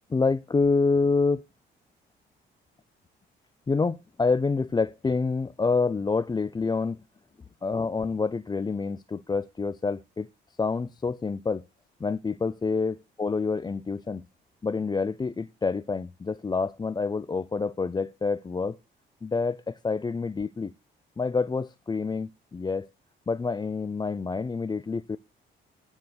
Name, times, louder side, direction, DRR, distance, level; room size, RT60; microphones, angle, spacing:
voice 1, 0.1-1.4 3.7-7.0 7.6-10.3 10.6-11.7 12.0-14.3 14.6-18.8 19.2-20.7 21.2-22.9 23.3-25.2, left 4 dB, 20° left, 0.5 m, -27 dB
9.6 x 6.6 x 6.1 m
cardioid pair, 90°, 20 cm